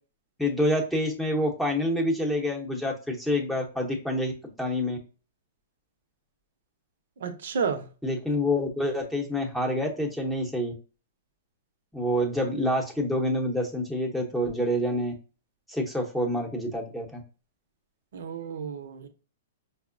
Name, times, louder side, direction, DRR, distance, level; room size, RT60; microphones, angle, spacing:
voice 1, 0.4-4.3 4.6-5.0 8.0-10.7 11.9-15.1 15.7-17.2, left 1 dB, ahead, 0.8 m, -27 dB
voice 2, 7.2-7.9 18.1-19.1, right 6 dB, 75° right, 0.6 m, -31 dB
5.2 x 2.0 x 2.5 m
hypercardioid pair, 150°, 0 cm